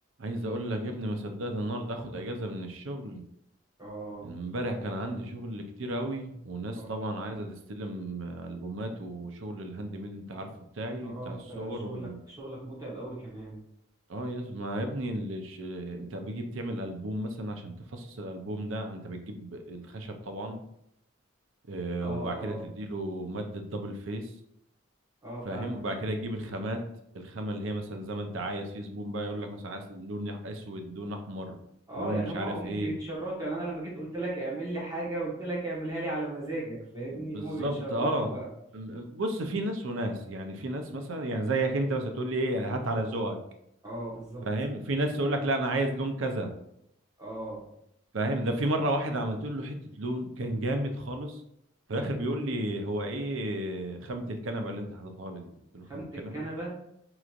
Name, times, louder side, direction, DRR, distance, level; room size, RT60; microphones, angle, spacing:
voice 1, 0.2-3.2 4.2-10.5 10.8-12.2 14.1-20.6 21.7-24.3 25.4-26.8 27.1-31.6 32.0-32.9 37.1-38.3 38.7-43.4 44.4-46.5 48.1-51.3 51.9-56.4, right 1 dB, 75° right, 5 dB, 0.6 m, -33 dB
voice 2, 3.8-4.3 6.7-6.9 11.0-13.6 22.0-22.6 25.2-25.8 31.9-38.5 43.8-44.5 47.2-47.6 55.9-56.7, right 2 dB, 15° right, -6 dB, 1.2 m, -36 dB
5.0 x 3.0 x 2.5 m, 0.77 s
head